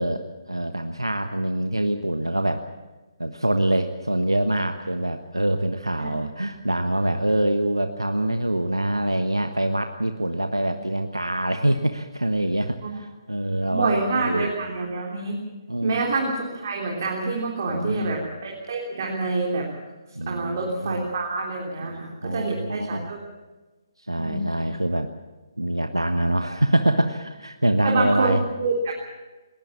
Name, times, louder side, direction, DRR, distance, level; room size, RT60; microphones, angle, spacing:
voice 1, 0.0-2.6 3.2-14.5 15.7-16.0 17.7-18.2 20.2-21.0 21.8-23.1 24.0-25.1 25.6-28.4, right 1 dB, 90° right, 7 dB, 1.2 m, -25 dB
voice 2, 13.7-15.4 15.8-19.7 20.3-23.2 24.2-24.5 27.8-28.9, right 3 dB, 40° right, -1 dB, 3.5 m, -27 dB
20.5 x 20.0 x 7.3 m, 1.2 s
figure-of-eight pair, 140°, 2 cm